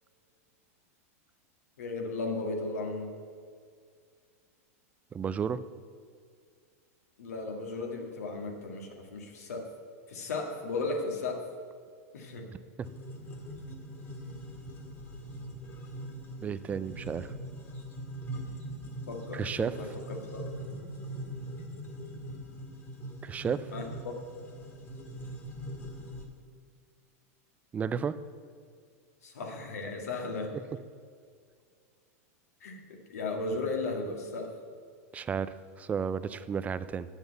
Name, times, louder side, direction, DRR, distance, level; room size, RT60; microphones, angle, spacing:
voice 1, 1.8-3.1 7.2-9.7 10.1-11.4 12.1-12.5 19.1-20.4 23.7-24.1 29.2-30.5 32.6-34.5, left 3 dB, 90° left, 2 dB, 1.9 m, -35 dB
voice 2, 5.1-5.6 12.8-12.9 16.4-17.3 19.3-19.7 23.2-23.7 27.7-28.1 35.1-37.1, right 7 dB, 20° right, 14 dB, 0.4 m, -32 dB
sound 1, 12.8-26.2, right 1 dB, 30° left, 2.0 m, -42 dB
8.0 x 7.2 x 8.0 m, 2.1 s
supercardioid pair, 130°, 8 cm